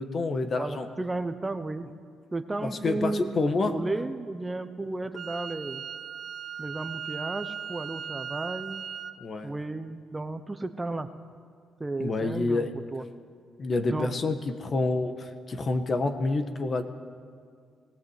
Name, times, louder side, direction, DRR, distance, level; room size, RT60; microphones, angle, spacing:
voice 1, 0.0-0.9 2.6-3.7 9.2-9.5 12.0-12.7 13.6-16.8, left 3 dB, 40° left, 8 dB, 1.5 m, -28 dB
voice 2, 0.6-1.9 2.3-5.8 6.6-8.8 9.4-11.1 11.8-13.0 13.8-14.2, right 2 dB, 20° right, 10 dB, 0.9 m, -33 dB
Wind instrument woodwind instrument, 5.1-9.1, right 7 dB, 55° right, 0.9 m, -37 dB
18.0 x 17.5 x 8.2 m, 2.1 s
cardioid pair, 90°, 0 cm